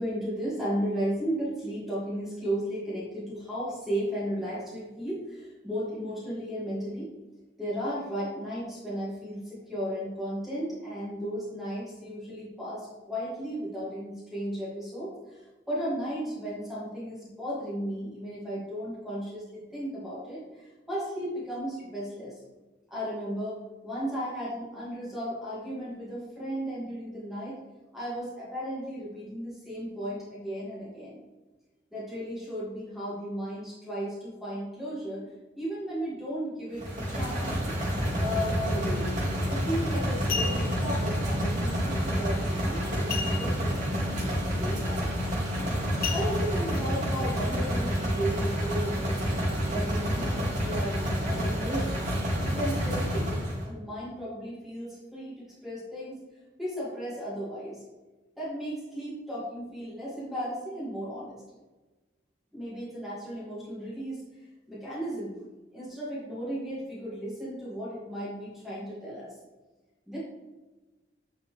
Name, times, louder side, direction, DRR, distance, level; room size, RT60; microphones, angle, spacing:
voice 1, 0.0-7.1 7.6-22.3 22.9-27.6 27.9-31.2 31.9-37.6 38.1-39.1 39.5-45.3 46.1-49.2 49.7-51.0 51.2-51.9 52.3-53.3 53.6-56.2 56.6-57.8 58.4-61.4 62.5-64.2 64.7-65.4 65.7-69.3 70.1-70.2, equal, ahead, -9 dB, 2.2 m, -35 dB
sound 1, 36.8-53.7, equal, 45° right, 2.2 m, -29 dB
sound 2, 39.5-39.6 40.1-40.9 43.1-43.8 44.1-44.2 44.7-44.9 46.0-46.8 47.4-47.5, left 6 dB, 55° left, 0.6 m, -34 dB
9.6 x 4.7 x 3.3 m, 1.2 s
head